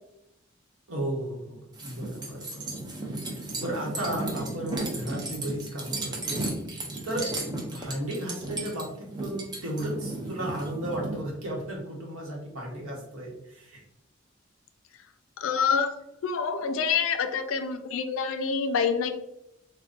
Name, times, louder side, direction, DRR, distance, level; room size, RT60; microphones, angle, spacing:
voice 1, 0.9-2.6 3.1-13.8, right 1 dB, 80° right, -1 dB, 1.0 m, -34 dB
sound 1, 1.7-11.2, right 2 dB, 20° right, 0.4 m, -34 dB
voice 2, 15.4-15.9 16.2-19.1, left 6 dB, 75° left, 8 dB, 0.4 m, -26 dB
3.6 x 2.2 x 2.5 m, 0.83 s
head